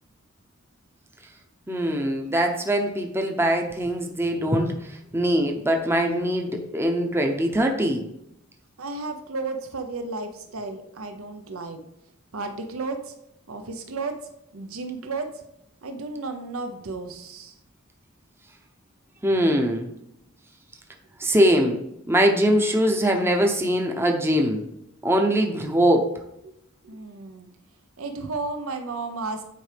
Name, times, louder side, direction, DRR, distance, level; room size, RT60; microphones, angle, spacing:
voice 1, 1.7-8.1 19.2-19.9 21.2-24.6 25.0-26.1, equal, 10° right, 3 dB, 0.7 m, -22 dB
voice 2, 8.8-11.8 12.3-13.1 13.5-15.4 15.8-17.5 26.8-27.5 28.0-29.4, right 3 dB, 80° right, 6 dB, 0.8 m, -33 dB
9.3 x 4.7 x 3.4 m, 0.81 s
head